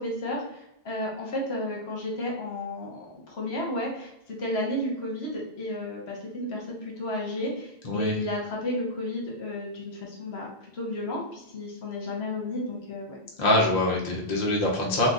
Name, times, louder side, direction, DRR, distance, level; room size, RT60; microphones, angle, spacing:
voice 1, 0.0-10.5 10.7-13.6, left 1 dB, 75° left, -1 dB, 1.1 m, -32 dB
voice 2, 13.4-15.1, left 1 dB, 45° left, -2 dB, 0.8 m, -24 dB
2.8 x 2.3 x 3.7 m, 0.81 s
omnidirectional pair, 1.1 m